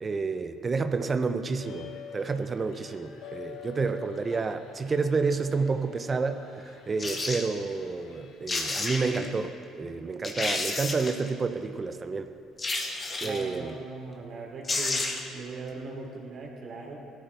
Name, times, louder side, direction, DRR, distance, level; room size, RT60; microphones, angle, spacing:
voice 1, 0.0-12.3 12.8-13.8, right 4 dB, 35° right, 9 dB, 0.8 m, -30 dB
sound 1, 1.6-9.4, left 8 dB, 70° left, 1.3 m, -47 dB
sound 2, 7.0-7.5 8.2-8.3 8.5-9.3 9.8-9.9 10.2-11.3 12.6-13.5 14.3-14.4 14.6-15.4 15.7-15.8, left 2 dB, 35° left, 1.7 m, -31 dB
voice 2, 13.2-15.1 15.3-17.0, right 3 dB, 55° right, -1 dB, 3.1 m, -39 dB
16.5 x 13.0 x 3.5 m, 2.7 s
hypercardioid pair, 60°, 0 cm